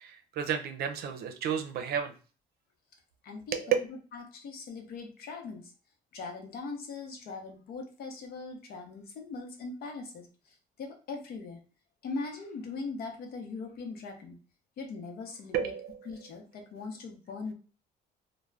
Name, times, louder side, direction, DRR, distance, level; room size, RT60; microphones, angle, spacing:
voice 1, 0.0-2.1 3.5-3.7 15.5-16.0, right 9 dB, 65° right, 6 dB, 0.6 m, -31 dB
voice 2, 3.2-5.7 6.1-11.6 12.0-14.4 14.8-15.7 16.1-17.5, left 4 dB, 65° left, 3 dB, 0.8 m, -40 dB
2.4 x 2.1 x 3.2 m, 0.36 s
cardioid pair, 110°, 17 cm